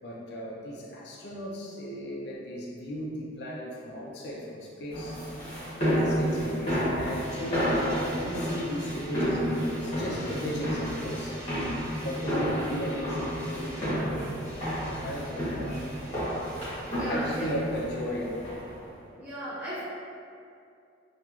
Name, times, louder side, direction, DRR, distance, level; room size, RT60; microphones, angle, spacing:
voice 1, 0.0-5.2 6.0-14.5 15.0-15.9 16.9-18.5, equal, 55° left, -3 dB, 0.4 m, -36 dB
sound 1, 4.9-18.8, equal, 35° left, 1.0 m, -31 dB
voice 2, 16.9-17.5 19.1-19.8, equal, 15° right, -17 dB, 1.5 m, -36 dB
3.0 x 2.3 x 2.4 m, 2.5 s
head